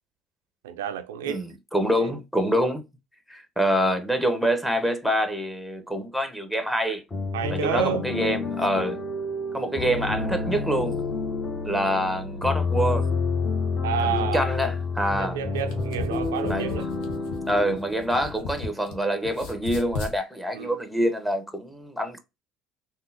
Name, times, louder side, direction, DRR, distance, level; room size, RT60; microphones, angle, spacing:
voice 1, 0.6-1.4 1.9-2.1 7.3-8.1 11.7-11.9 13.8-14.5 15.2-16.9 20.5-20.8, right 8 dB, 90° right, 0.3 m, -30 dB
voice 2, 1.3-2.8 3.3-7.0 7.5-9.0 9.5-11.0 11.6-13.1 14.0-15.4 16.5-16.7 17.5-22.2, equal, 5° left, 0.9 m, -26 dB
sound 1, 7.1-18.8, left 4 dB, 25° left, 1.1 m, -29 dB
sound 2, 15.4-18.9 19.2-20.2, left 4 dB, 70° left, 0.8 m, -35 dB
3.6 x 2.4 x 2.7 m
hypercardioid pair, 75°, 0 cm